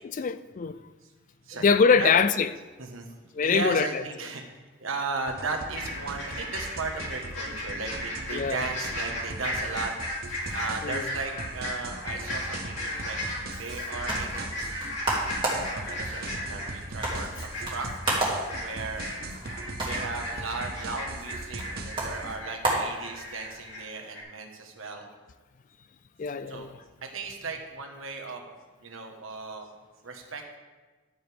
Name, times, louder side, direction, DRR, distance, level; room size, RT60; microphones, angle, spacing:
voice 1, 0.2-0.8 1.6-2.5 3.3-4.0 8.3-8.6 10.8-11.1 26.2-26.8, left 5 dB, 40° left, 0.3 m, -23 dB
voice 2, 3.4-4.4 4.8-9.9 10.5-13.2 13.5-14.6 15.4-17.9 18.6-19.1 19.8-25.1 26.5-26.7 27.0-28.5 28.8-29.7 30.0-30.6, right 4 dB, 75° right, 1.4 m, -36 dB
sound 1, 5.3-22.4, right 2 dB, 45° right, 0.8 m, -40 dB
sound 2, 5.7-23.8 24.1-24.2, left 1 dB, 60° left, 3.2 m, -36 dB
sound 3, 13.7-23.6, right 2 dB, 25° right, 2.5 m, -33 dB
12.0 x 9.2 x 3.5 m
head